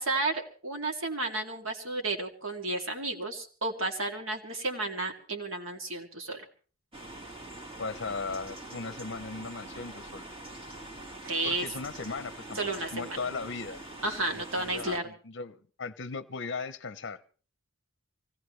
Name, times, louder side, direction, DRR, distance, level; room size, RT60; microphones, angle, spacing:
voice 1, 0.0-6.5 11.2-11.7 12.6-13.2 14.0-15.1, right 2 dB, 70° right, 4 dB, 2.4 m, -32 dB
sound 1, 6.9-15.0, right 2 dB, 25° right, 1.7 m, -44 dB
voice 2, 7.8-10.3 11.4-12.6 12.9-13.8 14.3-17.2, left 4 dB, 55° left, 15 dB, 0.7 m, -37 dB
24.5 x 17.5 x 3.2 m, 0.40 s
head